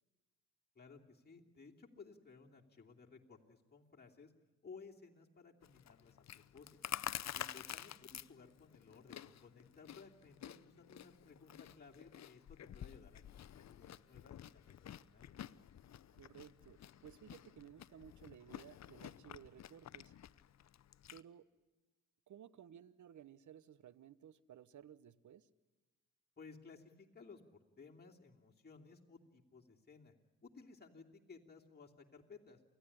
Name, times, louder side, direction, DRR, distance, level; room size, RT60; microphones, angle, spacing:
voice 1, 0.7-4.3 4.6-6.7 7.3-15.3 26.4-27.4 27.8-30.1 30.4-32.7, left 4 dB, 25° left, -1 dB, 2.9 m, -58 dB
Chewing mastication, 5.6-21.2, left 10 dB, 50° left, 0.8 m, -50 dB
voice 2, 16.1-20.1 21.1-21.5 22.3-25.5, right 9 dB, 55° right, 19 dB, 1.1 m, -57 dB
28.5 x 15.0 x 9.9 m, 1.1 s
hypercardioid pair, 45°, 36 cm